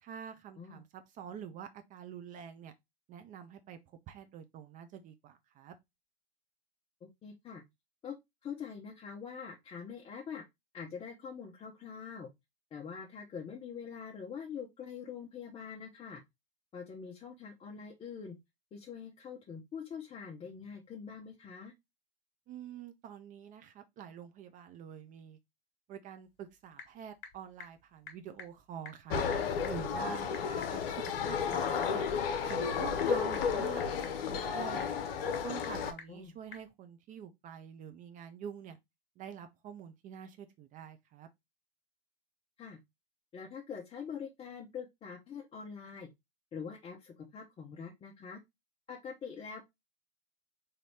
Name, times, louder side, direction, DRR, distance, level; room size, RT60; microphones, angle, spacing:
voice 1, 0.0-2.7 3.1-3.8 4.1-5.7 22.5-25.4 25.9-29.2 29.7-32.1 32.5-34.9 35.4-38.8 39.2-41.3, right 9 dB, 25° right, 0.4 m, -47 dB
voice 2, 7.0-7.6 8.0-8.2 8.4-10.4 10.7-12.3 12.7-16.2 16.7-18.4 18.7-21.7 30.2-30.4 36.1-36.3 42.6-42.8 43.3-46.1 46.5-48.4 48.9-49.7, left 6 dB, 20° left, 0.6 m, -44 dB
Typing / Telephone, 26.2-36.7, left 6 dB, 45° left, 1.4 m, -54 dB
sound 1, 29.1-35.9, left 6 dB, 65° left, 0.7 m, -32 dB
3.9 x 2.7 x 3.1 m
figure-of-eight pair, 95°, 31 cm